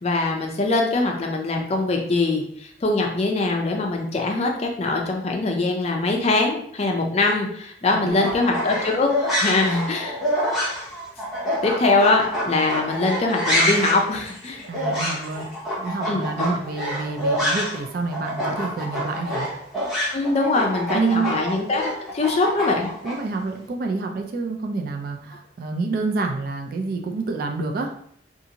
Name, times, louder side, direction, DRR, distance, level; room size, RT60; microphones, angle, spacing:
voice 1, 0.0-9.1 9.4-10.2 11.6-14.7 16.1-16.6 20.1-22.9, left 3 dB, 35° left, 1 dB, 0.4 m, -22 dB
voice 2, 7.9-8.3 14.7-15.5 15.8-19.5 20.9-21.4 23.0-27.9, right 3 dB, 50° right, 3 dB, 0.3 m, -28 dB
sound 1, 8.1-17.9 18.1-23.1, equal, ahead, 0.8 m, -26 dB
2.6 x 2.5 x 2.8 m, 0.66 s
head